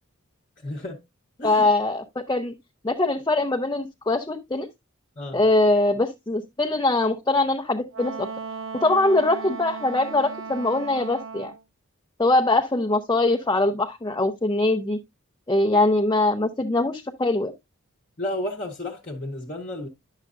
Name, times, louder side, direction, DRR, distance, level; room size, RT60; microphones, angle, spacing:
voice 1, 0.6-1.0 1.4-1.7 5.2-5.4 18.2-19.9, left 1 dB, 35° left, 0.9 m, -32 dB
voice 2, 1.4-2.5 2.8-4.7 5.3-8.3 8.8-11.5 12.2-15.0 15.5-17.5, left 2 dB, 20° left, 0.6 m, -22 dB
Wind instrument woodwind instrument, 7.9-11.6, right 5 dB, 70° right, 0.8 m, -36 dB
10.5 x 6.4 x 2.5 m
head